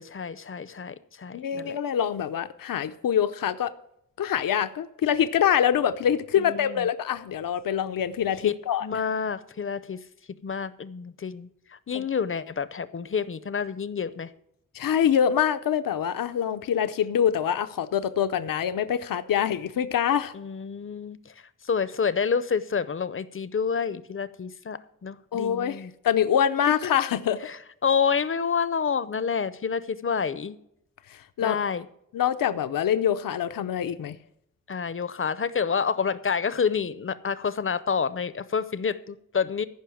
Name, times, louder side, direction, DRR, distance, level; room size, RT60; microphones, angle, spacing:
voice 1, 0.0-1.8 6.4-6.8 8.4-8.5 8.8-10.0 10.4-11.5 11.9-14.3 20.3-21.2 21.6-25.9 26.8-26.9 27.4-27.6 27.8-30.6 31.4-31.8 34.7-39.7, left 6 dB, 40° left, 15 dB, 0.6 m, -28 dB
voice 2, 1.3-3.7 4.2-9.0 11.9-12.0 14.7-20.3 25.3-27.4 31.1-31.6 32.1-34.2, left 9 dB, 75° left, 10 dB, 0.6 m, -25 dB
15.0 x 5.6 x 7.1 m, 0.75 s
wide cardioid pair, 110°, 34 cm